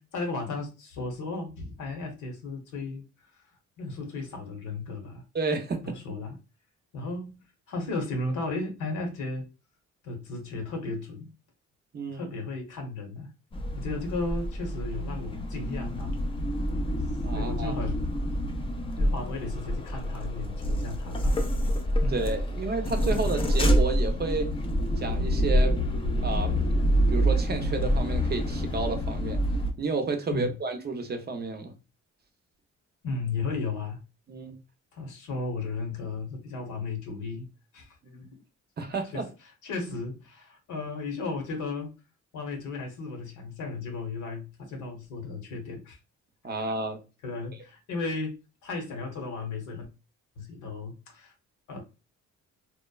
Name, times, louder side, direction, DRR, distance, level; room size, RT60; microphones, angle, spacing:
voice 1, 0.0-3.0 3.8-5.2 5.8-6.4 6.9-7.4 7.7-9.5 10.0-11.3 12.1-13.3 13.8-16.2 17.3-18.1 19.0-21.4 22.0-22.2 30.3-30.5 33.0-34.0 34.9-37.5 37.7-38.0 38.3-38.4 39.1-39.2 39.6-41.9 42.3-46.0 46.5-46.6 47.2-48.4 48.6-49.9 50.4-51.3 51.7-51.8, left 3 dB, 80° left, 0.9 m, -35 dB
voice 2, 5.3-5.9 11.9-12.3 17.2-17.8 22.1-24.5 25.0-25.9 26.2-26.5 27.1-29.4 29.8-31.7 34.3-34.5 38.0-38.3 38.8-39.2 46.4-47.0, right 3 dB, 35° right, 0.5 m, -31 dB
sound 1, 13.5-29.7, equal, 20° left, 0.4 m, -27 dB
2.9 x 2.0 x 2.2 m
cardioid pair, 90°, 30 cm